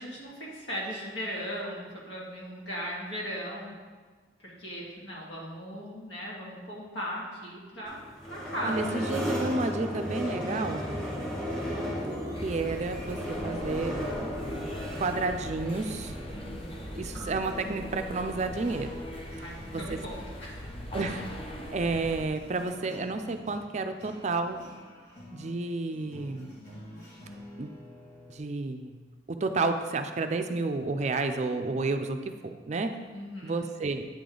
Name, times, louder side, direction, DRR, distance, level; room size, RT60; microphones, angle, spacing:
voice 1, 0.0-3.7 4.4-9.0 16.3-16.8 19.3-20.7 33.1-33.7, equal, 75° left, -5 dB, 2.0 m, -38 dB
sound 1, 7.9-22.8, equal, 5° left, 1.8 m, -36 dB
voice 2, 8.6-10.8 11.5-11.6 12.4-14.0 15.0-16.1 16.9-18.9 19.7-20.0 20.9-21.2 21.7-24.6 25.3-26.5 27.6-27.7 28.3-28.9 29.3-33.0 33.4-34.1, right 3 dB, 40° right, 6 dB, 0.4 m, -31 dB
sound 2, 12.3-22.3, equal, 30° left, 0.7 m, -41 dB
sound 3, 17.3-28.4, left 1 dB, 45° left, 2.4 m, -49 dB
8.8 x 5.1 x 3.8 m, 1.4 s
head